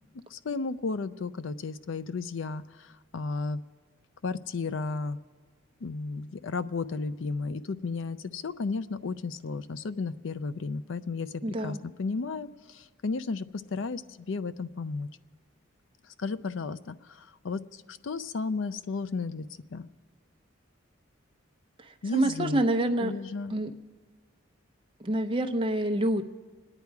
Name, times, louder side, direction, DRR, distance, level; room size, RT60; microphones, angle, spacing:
voice 1, 0.3-3.6 4.2-5.2 5.8-11.3 11.6-13.5 13.7-14.0 14.3-15.1 16.2-19.5 19.7-19.9 22.0-22.6 23.0-23.5, left 4 dB, 70° left, 14 dB, 0.5 m, -33 dB
voice 2, 11.4-11.8 22.1-23.1 23.5-23.7 25.0-26.2, right 1 dB, 25° right, 5 dB, 0.7 m, -27 dB
26.0 x 9.9 x 4.7 m, 1.4 s
head